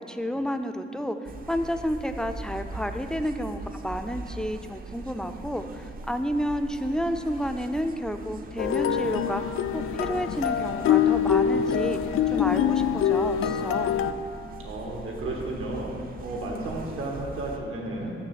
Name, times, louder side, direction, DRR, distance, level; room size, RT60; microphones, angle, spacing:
voice 1, 0.0-9.4 9.7-12.0 12.3-14.0, equal, 5° left, 7 dB, 0.3 m, -30 dB
sound 1, 1.2-17.6, right 3 dB, 45° right, 0.6 m, -41 dB
sound 2, 8.6-14.1, left 9 dB, 85° left, 0.4 m, -24 dB
voice 2, 14.6-18.1, right 2 dB, 85° right, -2 dB, 1.8 m, -33 dB
6.8 x 6.7 x 7.3 m, 2.6 s
wide cardioid pair, 150°, 21 cm